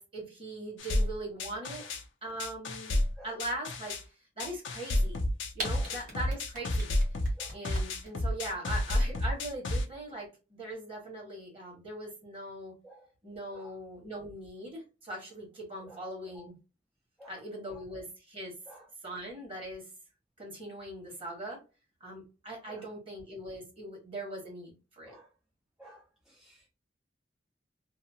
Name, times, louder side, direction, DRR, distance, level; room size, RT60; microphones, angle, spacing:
voice 1, 0.0-1.8 2.2-4.0 4.4-5.2 5.5-6.9 7.5-12.7 13.2-16.5 17.3-18.5 19.0-19.8 20.4-21.6 22.0-25.1, right 1 dB, 30° right, -2 dB, 1.4 m, -41 dB
sound 1, 0.8-2.0 2.4-4.0 4.4-9.8, left 1 dB, 80° left, 0.5 m, -30 dB
sound 2, 5.6-8.1, right 2 dB, 45° right, 1.0 m, -38 dB
voice 2, 5.7-6.4 7.4-7.6 8.6-8.8 9.6-9.7 12.8-13.1 13.5-13.8 15.8-16.1 16.3-16.5 17.2-17.8 18.7-18.9 22.7-22.9 25.0-25.3 25.8-26.7, right 1 dB, ahead, -3 dB, 0.4 m, -53 dB
2.8 x 2.0 x 2.7 m, 0.30 s
head